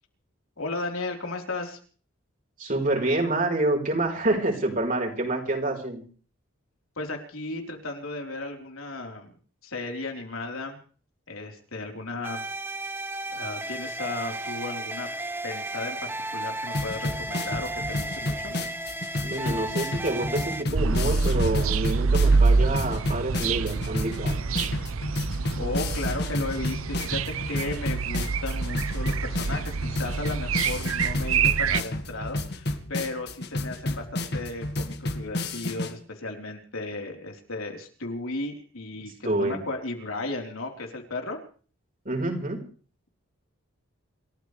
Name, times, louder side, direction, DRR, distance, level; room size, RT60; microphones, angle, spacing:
voice 1, 0.6-1.8 7.0-9.3 9.6-10.8 11.3-12.4 13.3-15.1 15.4-16.0 16.3-18.6 25.6-41.4, left 2 dB, 85° left, 2 dB, 4.1 m, -35 dB
voice 2, 2.6-6.0 19.2-24.4 39.2-39.6 42.0-42.6, right 2 dB, 40° right, 2 dB, 4.6 m, -27 dB
sound 1, 12.2-20.6, right 1 dB, 10° right, 0.9 m, -34 dB
sound 2, 16.7-35.9, left 1 dB, 50° left, 1.7 m, -31 dB
sound 3, 20.7-31.8, right 4 dB, 85° right, 0.7 m, -26 dB
28.5 x 14.0 x 3.3 m, 0.41 s
head